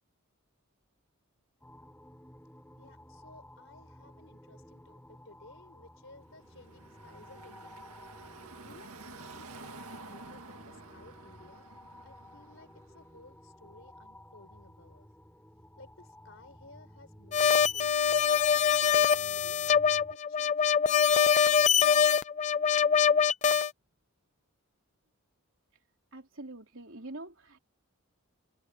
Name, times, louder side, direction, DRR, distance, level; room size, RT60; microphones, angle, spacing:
sound 1, 1.6-20.2, left 1 dB, 10° left, 7.7 m, -54 dB
voice 1, 2.8-7.8 8.6-11.7 12.0-15.1 15.8-17.5 17.7-19.6 20.1-22.0, left 2 dB, 55° left, 4.9 m, -57 dB
Car passing by / Traffic noise roadway noise, 6.3-13.2, right 3 dB, 85° right, 2.0 m, -50 dB
sound 2, 17.3-23.7, left 7 dB, 30° left, 0.4 m, -24 dB
voice 2, 26.1-27.6, right 2 dB, 60° right, 3.8 m, -44 dB
head